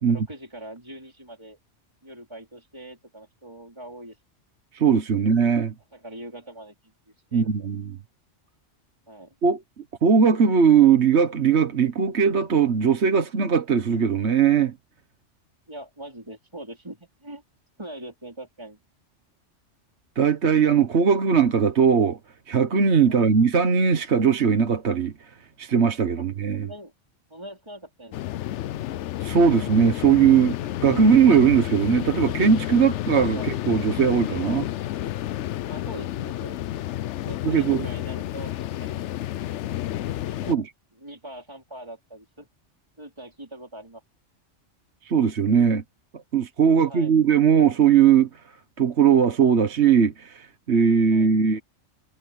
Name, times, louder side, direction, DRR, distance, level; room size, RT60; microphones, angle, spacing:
voice 1, 0.1-1.6 2.0-4.2 5.2-5.3 5.9-6.9 7.3-7.7 9.1-9.4 15.7-17.4 17.8-18.8 23.1-23.4 26.2-26.3 26.6-26.9 27.3-28.3 33.2-33.5 35.7-36.6 37.2-39.0 40.2-40.6 41.0-42.5 43.0-44.0 46.7-47.2 51.1-51.3, right 1 dB, 20° right, 3.8 m, -42 dB
voice 2, 4.7-5.7 7.3-7.9 9.4-9.6 10.0-14.7 20.2-22.2 22.5-25.1 25.6-26.7 29.2-30.6 30.8-34.7 37.4-37.8 40.5-40.7 45.0-45.8 46.3-48.3 48.8-51.6, right 7 dB, 65° right, 1.5 m, -19 dB
sound 1, 28.1-40.6, left 13 dB, 75° left, 0.9 m, -30 dB
omnidirectional pair, 1.2 m